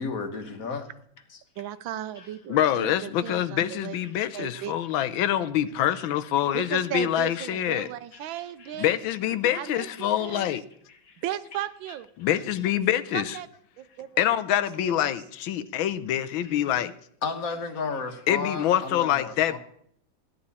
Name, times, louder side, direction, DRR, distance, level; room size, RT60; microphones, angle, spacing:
voice 1, 0.0-0.8 2.2-2.3 8.1-8.3 8.6-8.7 10.9-11.2 16.4-16.5 17.2-19.6, left 4 dB, 50° left, 1.5 m, -33 dB
voice 2, 1.6-4.0 4.3-4.8 6.5-8.9 9.5-10.5 11.2-12.1 13.1-13.5 13.8-14.4 14.7-14.9, right 12 dB, 80° right, 1.4 m, -36 dB
voice 3, 2.5-7.9 8.8-10.6 12.2-13.4 14.2-16.9 18.3-19.6, left 11 dB, 90° left, 1.5 m, -25 dB
16.0 x 10.5 x 4.2 m
omnidirectional pair, 2.1 m